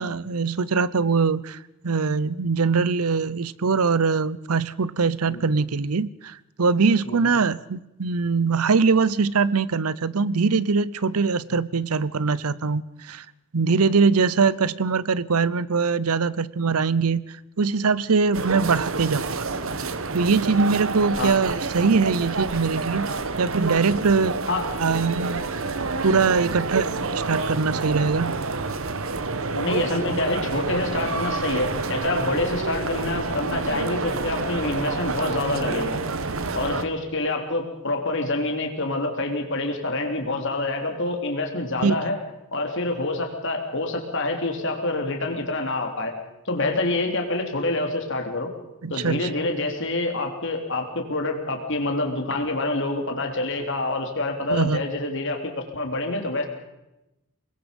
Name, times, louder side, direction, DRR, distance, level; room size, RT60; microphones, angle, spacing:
voice 1, 0.0-1.6 1.8-13.2 13.5-19.5 20.1-23.1 23.4-24.4 24.8-25.4 26.0-28.3 41.8-42.1 48.8-49.3 54.5-54.8, right 4 dB, 85° right, 20 dB, 0.7 m, -22 dB
sound 1, 18.3-36.8, right 3 dB, 65° right, 1.3 m, -28 dB
voice 2, 29.5-36.0 36.5-42.2 42.5-46.1 46.5-48.5 48.9-56.5, left 2 dB, 55° left, 3 dB, 3.4 m, -27 dB
25.0 x 21.0 x 5.3 m, 0.93 s
head